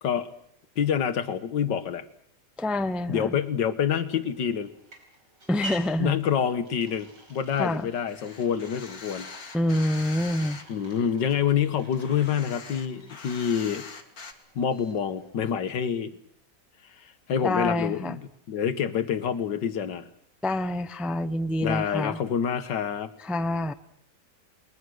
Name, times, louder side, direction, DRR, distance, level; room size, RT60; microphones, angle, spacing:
voice 1, 0.0-0.3 0.8-2.1 3.1-4.7 6.0-9.3 10.7-13.9 14.6-16.2 17.0-18.2 18.5-20.1 21.6-23.1, left 8 dB, 80° left, 12 dB, 1.9 m, -27 dB
voice 2, 2.6-3.4 5.5-6.1 7.6-7.9 9.5-10.6 17.4-18.2 20.4-22.2 23.2-23.7, left 1 dB, ahead, 11 dB, 0.5 m, -27 dB
sound 1, 4.0-15.3, right 1 dB, 80° right, 5.5 m, -48 dB
sound 2, 8.1-10.6 11.1-14.3, left 4 dB, 55° left, 2.4 m, -43 dB
29.5 x 21.5 x 6.4 m, 0.68 s
omnidirectional pair, 1.9 m